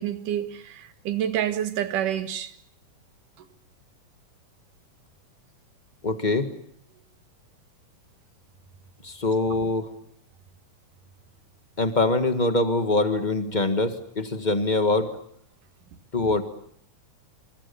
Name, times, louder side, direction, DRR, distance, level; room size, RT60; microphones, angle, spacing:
voice 1, 0.0-2.5, right 10 dB, 85° right, 3.1 m, -28 dB
voice 2, 6.0-6.5 9.0-9.9 11.8-15.1 16.1-16.4, left 2 dB, 25° left, 1.0 m, -23 dB
26.5 x 26.0 x 7.0 m
omnidirectional pair, 3.6 m